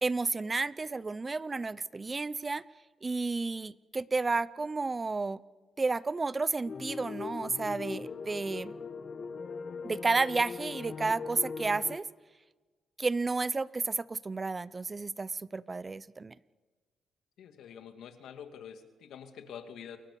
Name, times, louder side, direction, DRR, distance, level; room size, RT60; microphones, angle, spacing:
voice 1, 0.0-2.6 3.0-5.4 5.8-8.7 9.8-12.0 13.0-16.3, right 3 dB, 25° right, 18 dB, 0.7 m, -31 dB
sound 1, 6.6-12.0, left 5 dB, 45° left, 1.5 m, -40 dB
voice 2, 17.4-20.0, left 8 dB, 75° left, 6 dB, 2.6 m, -46 dB
28.5 x 23.5 x 7.1 m, 1.3 s
cardioid pair, 90°, 0 cm